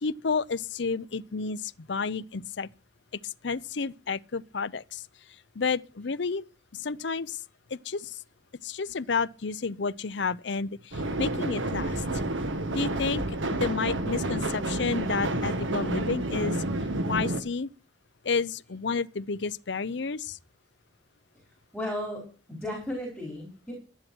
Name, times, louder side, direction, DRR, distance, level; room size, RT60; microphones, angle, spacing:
voice 1, 0.0-2.7 3.2-5.0 5.6-6.4 6.7-7.4 7.7-8.2 8.6-12.0 12.7-16.6 17.1-17.7 18.2-20.4, left 5 dB, 65° left, 0.6 m, -31 dB
sound 1, 10.9-17.4, right 2 dB, 80° right, 1.5 m, -29 dB
voice 2, 21.7-23.7, left 1 dB, ahead, 4.6 m, -35 dB
12.5 x 10.5 x 6.2 m
head